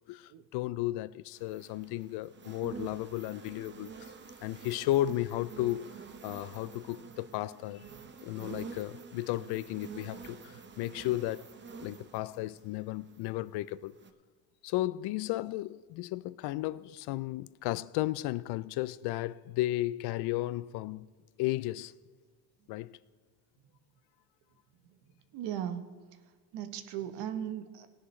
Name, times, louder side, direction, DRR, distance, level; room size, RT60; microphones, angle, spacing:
voice 1, 0.0-4.1 4.4-7.9 8.2-11.5 11.8-13.9 14.6-21.1 21.4-21.9 22.7-22.9, left 16 dB, 65° left, 0.5 m, -34 dB
sound 1, 1.3-13.5 13.9-14.1, right 5 dB, 25° right, 0.8 m, -48 dB
voice 2, 25.3-25.8 26.5-27.9, right 10 dB, 65° right, 1.1 m, -38 dB
18.0 x 9.9 x 3.2 m
cardioid pair, 120°, 44 cm